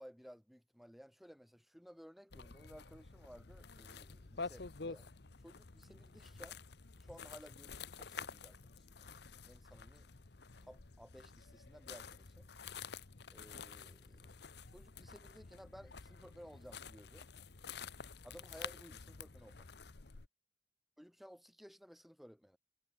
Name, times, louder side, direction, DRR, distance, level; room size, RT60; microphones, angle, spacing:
voice 1, 0.0-5.1 5.4-6.6 7.0-9.2 9.4-10.1 10.6-12.5 13.3-14.4 14.7-17.3 18.2-19.7 21.0-22.6, equal, ahead, 4.3 m, -57 dB
sound 1, 2.3-20.3, left 5 dB, 55° left, 1.0 m, -50 dB
head